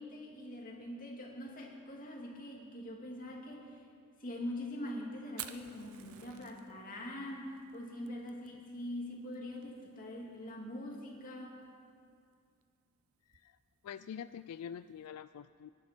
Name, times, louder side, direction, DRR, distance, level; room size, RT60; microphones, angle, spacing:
voice 1, 0.0-3.8 4.2-11.6, left 1 dB, 40° left, -1 dB, 2.4 m, -43 dB
Fire, 5.3-15.1, right 11 dB, 65° right, 0.8 m, -54 dB
voice 2, 13.8-15.7, left 8 dB, 80° left, 13 dB, 0.3 m, -45 dB
24.5 x 11.5 x 4.4 m, 2.3 s
head